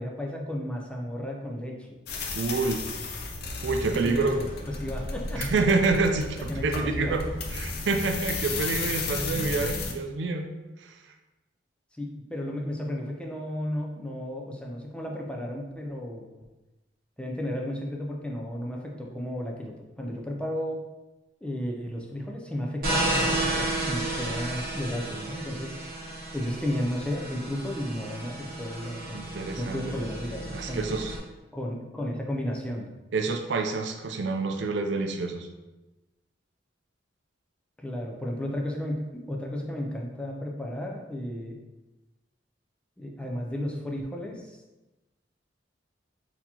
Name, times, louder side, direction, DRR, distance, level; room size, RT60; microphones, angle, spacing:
voice 1, 0.0-1.9 3.9-5.5 6.5-7.1 12.0-16.2 17.2-20.8 21.4-25.8 26.0-29.2 29.6-31.0 31.5-32.9 37.8-41.6 43.0-44.6, left 1 dB, 5° left, 0 dB, 0.4 m, -33 dB
sound 1, 2.1-9.9, left 3 dB, 60° left, 0.5 m, -33 dB
voice 2, 2.4-2.8 3.6-4.4 5.4-10.5 10.8-10.9 29.1-30.0 30.5-31.2 33.1-35.5, right 3 dB, 75° right, 5 dB, 0.4 m, -27 dB
sound 2, 22.8-31.2, right 1 dB, 55° right, 1.1 m, -32 dB
4.2 x 2.8 x 2.8 m, 1.1 s
head